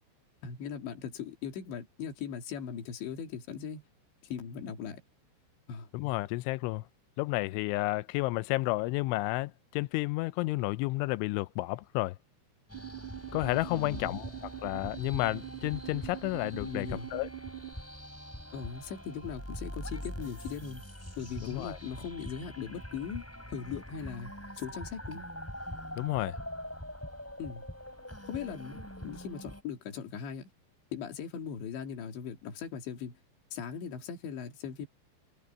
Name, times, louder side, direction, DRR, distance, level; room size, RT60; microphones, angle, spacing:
voice 1, 0.4-3.8 4.2-5.0 5.7-5.9 13.7-14.2 16.6-17.1 18.5-20.8 21.2-24.3 24.6-25.3 27.4-27.7 28.3-30.5 30.9-33.2 33.5-34.9, left 7 dB, 70° left, 5.0 m, -39 dB
voice 2, 5.9-6.8 7.2-12.2 13.3-14.3 14.6-17.3 21.4-21.8 26.0-26.4, left 20 dB, 85° left, 2.9 m, -31 dB
sound 1, 12.7-29.6, equal, 5° left, 6.5 m, -44 dB
sound 2, 12.7-17.7, right 14 dB, 25° right, 2.7 m, -44 dB
omnidirectional pair, 5.6 m